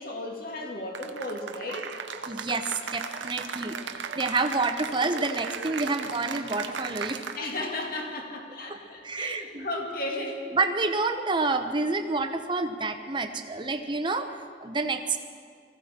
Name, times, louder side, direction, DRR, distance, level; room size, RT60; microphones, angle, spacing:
voice 1, 0.0-2.0 7.4-10.5, left 1 dB, 50° left, 1 dB, 2.1 m, -34 dB
Cheering / Applause, 0.9-7.7, right 6 dB, 80° right, 0.8 m, -36 dB
voice 2, 2.3-7.2 8.7-8.8 9.0-9.7 10.5-15.2, right 3 dB, 25° right, 7 dB, 0.8 m, -28 dB
20.5 x 16.0 x 4.4 m, 2.2 s
head